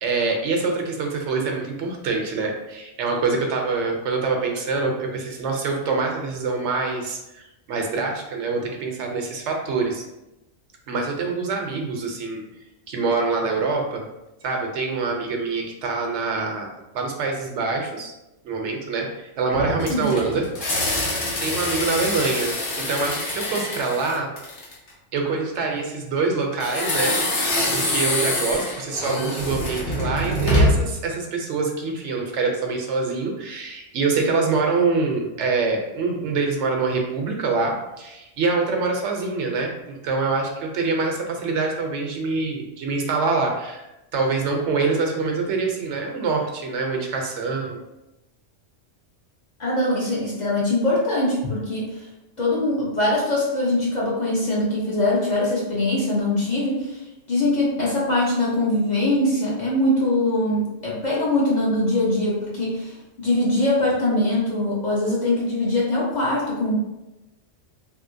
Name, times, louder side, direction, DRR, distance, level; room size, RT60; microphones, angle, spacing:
voice 1, 0.0-7.4 7.7-10.0 10.9-12.4 12.9-14.0 14.4-16.7 16.9-18.1 18.4-20.7 21.4-24.3 25.1-43.8 44.1-47.8, right 4 dB, 75° right, 2 dB, 0.9 m, -25 dB
sound 1, 19.5-24.9 26.6-31.0, left 1 dB, 70° left, 1.1 m, -25 dB
voice 2, 49.6-52.0 52.4-66.7, left 1 dB, 45° left, -6 dB, 0.7 m, -22 dB
3.0 x 2.7 x 2.5 m, 0.96 s
omnidirectional pair, 1.2 m